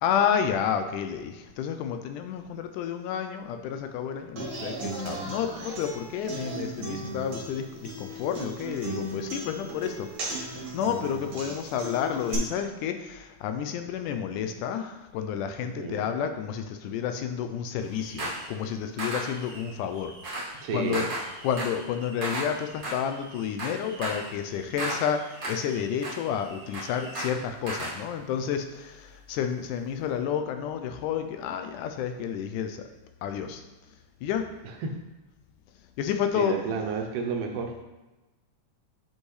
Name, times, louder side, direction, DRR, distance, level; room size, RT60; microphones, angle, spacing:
voice 1, 0.0-20.4 20.7-21.1 21.4-32.9 33.2-33.6 34.2-34.5 36.0-36.6, left 8 dB, 80° left, 7 dB, 2.0 m, -30 dB
Human voice / Acoustic guitar, 4.4-12.3, right 2 dB, 55° right, 2.4 m, -37 dB
voice 2, 15.6-16.0 20.5-21.1 34.6-34.9 36.4-37.8, right 5 dB, 75° right, 3 dB, 2.2 m, -31 dB
sound 1, 17.8-18.5 19.0-28.0, right 1 dB, 35° right, 1.7 m, -36 dB
8.2 x 5.3 x 3.2 m, 1.1 s
omnidirectional pair, 3.8 m